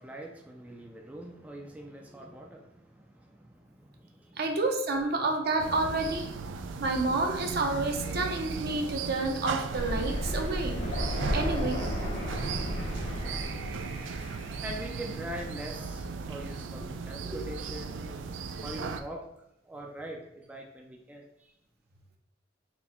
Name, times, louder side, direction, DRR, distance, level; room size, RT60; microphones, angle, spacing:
voice 1, 0.0-4.4 14.6-18.0 18.5-19.3 19.6-21.5, right 1 dB, 10° right, 0 dB, 0.3 m, -43 dB
voice 2, 4.4-6.3 6.8-10.8 11.3-11.8, right 2 dB, 60° right, 3 dB, 0.7 m, -29 dB
sound 1, 5.6-19.0, right 4 dB, 90° right, 0.3 m, -37 dB
Thunder, 9.7-14.5, equal, 75° left, 1.0 m, -33 dB
4.1 x 2.1 x 4.2 m, 0.80 s
head